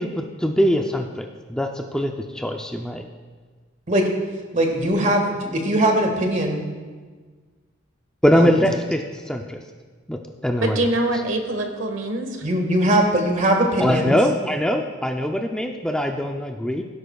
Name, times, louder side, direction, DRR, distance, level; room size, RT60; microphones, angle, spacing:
voice 1, 0.0-3.1 8.2-9.6 10.1-10.8 13.8-16.8, equal, 5° left, 3 dB, 0.4 m, -22 dB
voice 2, 4.5-6.6 8.4-8.5 12.4-14.2, right 1 dB, 40° right, 2 dB, 1.6 m, -20 dB
voice 3, 10.6-12.4, right 1 dB, 65° right, 4 dB, 1.3 m, -24 dB
17.0 x 10.5 x 2.3 m, 1.4 s
head